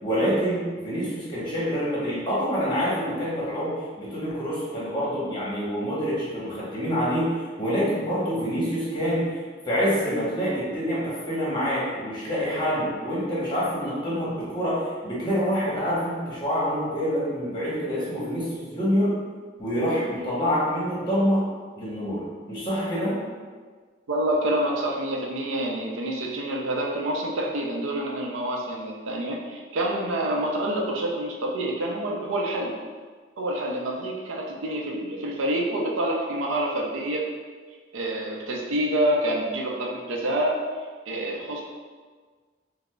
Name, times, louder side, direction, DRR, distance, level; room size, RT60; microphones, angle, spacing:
voice 1, 0.0-9.4 9.6-19.1 19.6-21.4 21.8-23.2, equal, 25° left, -8 dB, 1.0 m, -26 dB
voice 2, 24.1-32.8 33.4-37.3 37.9-40.6 41.1-41.6, right 1 dB, 90° right, -1 dB, 0.5 m, -27 dB
4.7 x 2.0 x 2.3 m, 1.5 s
head